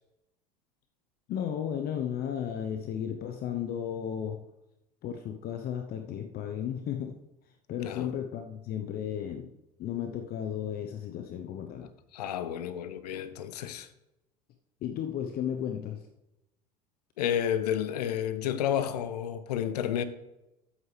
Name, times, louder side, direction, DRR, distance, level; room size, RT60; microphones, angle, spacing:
voice 1, 1.3-4.4 5.0-7.2 7.7-9.5 9.8-11.9 14.8-16.0, left 9 dB, 50° left, 0.9 m, -34 dB
voice 2, 12.1-13.9 17.2-20.0, left 10 dB, 80° left, 0.7 m, -31 dB
13.0 x 8.2 x 3.3 m
hypercardioid pair, 75°, 20 cm